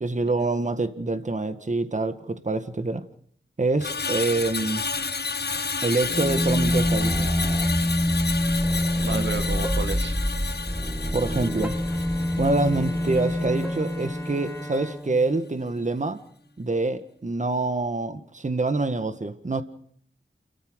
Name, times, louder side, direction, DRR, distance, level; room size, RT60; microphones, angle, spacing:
voice 1, 0.0-3.0 3.6-4.8 5.8-7.3 9.1-9.3 11.1-11.8 12.4-16.2 16.6-19.6, right 3 dB, 40° right, 10 dB, 1.7 m, -26 dB
Screech, 3.8-14.2 14.5-14.8, left 4 dB, 55° left, 1.3 m, -32 dB
sound 1, 6.0-14.6, equal, 10° right, 1.5 m, -26 dB
voice 2, 9.0-10.2, right 4 dB, 70° right, 8 dB, 1.7 m, -32 dB
Bowed string instrument, 11.4-16.9, equal, 15° left, 3.2 m, -40 dB
29.0 x 14.0 x 6.3 m, 0.63 s
cardioid pair, 50°, 20 cm